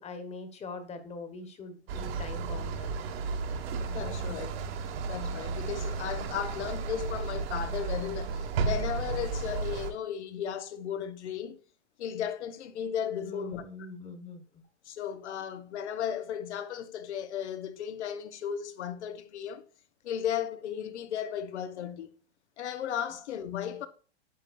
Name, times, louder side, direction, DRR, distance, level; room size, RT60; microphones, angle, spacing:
voice 1, 0.0-2.9 4.0-4.5 13.2-14.6, left 3 dB, 20° left, 1.4 m, -43 dB
sound 1, 1.9-9.9, right 4 dB, 65° right, 1.8 m, -33 dB
voice 2, 3.9-4.5 4.9-11.6 12.0-13.6 14.8-19.6 20.0-22.1 22.6-23.9, left 9 dB, 80° left, 1.2 m, -35 dB
10.0 x 7.6 x 2.6 m
hypercardioid pair, 135°, 33 cm